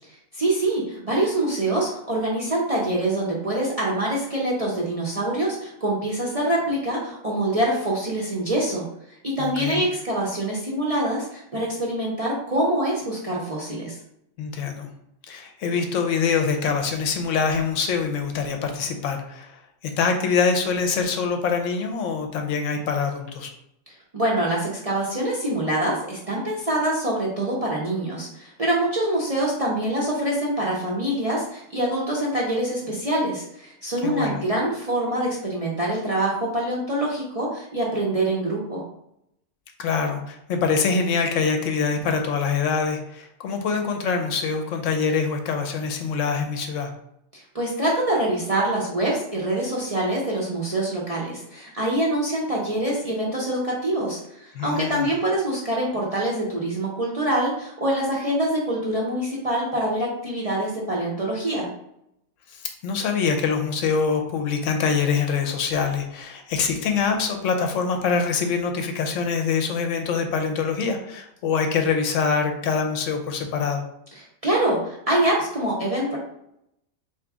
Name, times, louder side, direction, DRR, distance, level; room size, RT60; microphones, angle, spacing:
voice 1, 0.3-8.9 9.2-14.0 23.9-38.8 47.3-61.7 74.2-76.2, right 1 dB, 40° right, -4 dB, 0.6 m, -25 dB
voice 2, 9.4-9.9 14.4-14.9 15.3-19.6 20.0-23.5 34.0-34.4 39.8-46.9 54.5-55.1 62.5-73.8, left 5 dB, 70° left, 4 dB, 0.9 m, -24 dB
3.8 x 3.0 x 3.5 m, 0.78 s
omnidirectional pair, 1.4 m